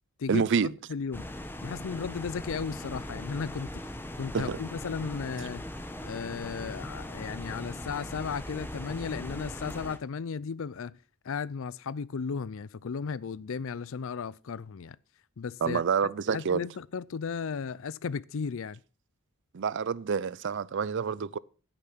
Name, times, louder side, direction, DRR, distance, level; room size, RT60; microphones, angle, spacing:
voice 1, 0.3-0.7 4.3-4.6 15.6-16.6 19.5-21.4, right 6 dB, 55° right, 0.5 m, -28 dB
voice 2, 0.9-1.3 1.6-3.9 4.2-5.7 6.0-11.0 11.2-15.0 15.4-15.8 16.3-18.8, left 5 dB, 60° left, 0.4 m, -35 dB
sound 1, 1.1-10.0, left 1 dB, 10° left, 1.1 m, -39 dB
10.0 x 9.1 x 5.9 m
head